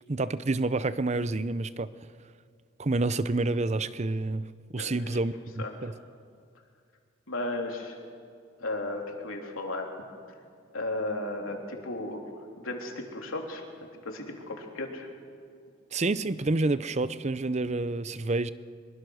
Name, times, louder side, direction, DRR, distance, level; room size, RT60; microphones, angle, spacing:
voice 1, 0.1-1.9 2.8-5.9 15.9-18.5, right 2 dB, 35° right, 15 dB, 0.6 m, -28 dB
voice 2, 5.3-5.8 7.3-8.0 8.6-9.9 10.7-15.1, left 2 dB, 90° left, 2 dB, 3.3 m, -35 dB
23.5 x 23.0 x 6.4 m, 2.2 s
head